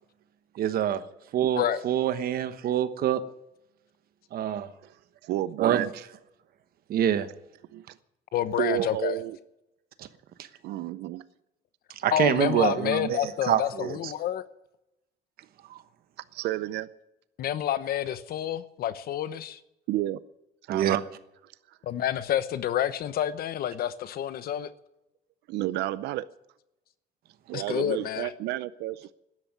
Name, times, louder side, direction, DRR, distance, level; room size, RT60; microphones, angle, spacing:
voice 1, 0.6-1.0 1.3-3.2 4.3-4.7 5.6-5.8 6.9-7.3 10.0-10.1 12.0-14.1 20.7-21.0, right 10 dB, 60° right, 1.1 m, -26 dB
voice 2, 5.2-5.9 7.7-7.9 8.6-9.4 10.6-11.2 16.3-16.9 19.9-20.2 20.7-21.0 21.7-21.8 25.5-26.3 27.5-29.1, right 14 dB, 80° right, 0.6 m, -31 dB
voice 3, 8.3-9.2 12.1-14.4 17.4-19.6 21.8-24.7 27.5-28.3, left 11 dB, 65° left, 0.9 m, -28 dB
12.5 x 11.0 x 9.6 m
cardioid pair, 110°, 17 cm